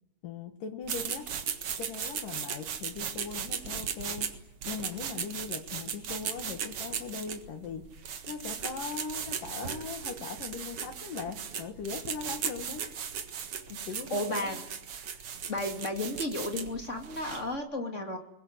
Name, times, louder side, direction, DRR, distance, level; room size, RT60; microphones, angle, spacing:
voice 1, 0.2-1.5 1.8-4.4 4.7-8.0 8.3-12.8 13.9-14.6 15.1-15.2, left 5 dB, 60° left, 8 dB, 3.1 m, -40 dB
sound 1, 0.8-17.5, right 7 dB, 55° right, 1.7 m, -37 dB
voice 2, 14.1-14.6 15.5-18.2, left 1 dB, 25° left, 4 dB, 1.9 m, -33 dB
29.0 x 21.5 x 8.0 m, 0.85 s
omnidirectional pair, 4.9 m